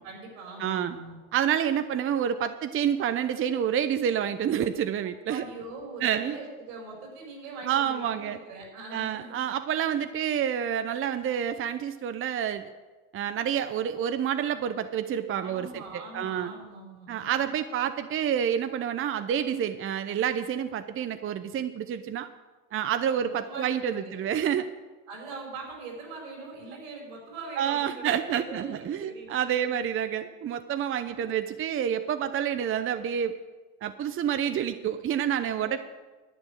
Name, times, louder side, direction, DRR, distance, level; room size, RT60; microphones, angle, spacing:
voice 1, 0.0-1.2 5.3-9.5 15.4-17.4 23.1-24.2 25.1-29.8 31.0-31.3 35.5-35.8, right 3 dB, 85° right, 0 dB, 4.9 m, -42 dB
voice 2, 0.6-1.0 1.3-5.4 6.0-6.4 7.6-8.4 8.9-12.6 13.1-16.5 17.1-22.3 22.7-24.7 27.6-33.4 33.8-35.8, right 9 dB, 35° right, 10 dB, 0.7 m, -28 dB
10.5 x 9.2 x 6.5 m, 1.2 s
supercardioid pair, 85°, 39 cm